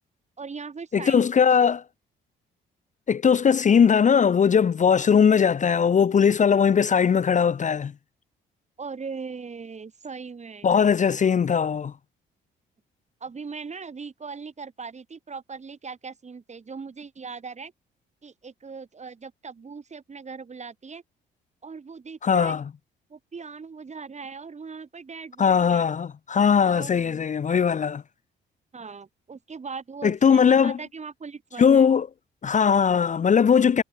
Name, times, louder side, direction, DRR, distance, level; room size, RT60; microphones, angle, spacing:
voice 1, 0.4-1.2 3.7-3.9 8.8-10.7 13.2-17.7 18.2-21.0 21.6-22.6 23.1-25.9 26.6-27.2 27.5-27.8 28.7-31.9, right 5 dB, 35° right, 7.7 m, -39 dB
voice 2, 0.9-1.8 3.1-7.9 10.6-11.9 22.2-22.6 25.4-28.0 30.0-30.8 31.6-32.1 32.4-33.8, left 7 dB, 40° left, 0.8 m, -19 dB
cardioid pair, 90°, 20 cm